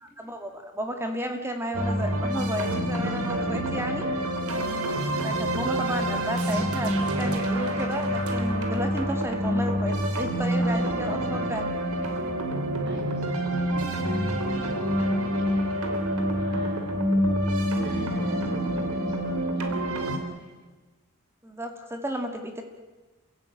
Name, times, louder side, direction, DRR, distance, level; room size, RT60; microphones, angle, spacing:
voice 1, 0.0-4.1 5.2-11.7 21.4-22.6, right 1 dB, 10° right, 5 dB, 2.1 m, -33 dB
sound 1, 1.7-20.2, equal, 85° right, 3.1 m, -27 dB
voice 2, 12.9-15.9 16.3-17.0 17.6-20.5, right 1 dB, 50° right, 0 dB, 7.3 m, -45 dB
28.5 x 16.5 x 8.7 m, 1.2 s
head